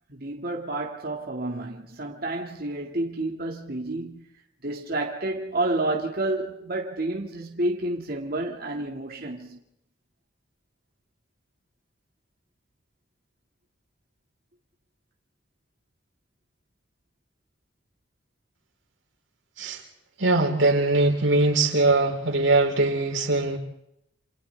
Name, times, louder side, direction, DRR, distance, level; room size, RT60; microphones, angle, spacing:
voice 1, 0.1-4.3 4.6-9.6, right 2 dB, 50° right, 2.0 m, -30 dB
voice 2, 20.2-23.6, right 2 dB, 90° right, 4.1 m, -21 dB
28.5 x 28.0 x 3.4 m
head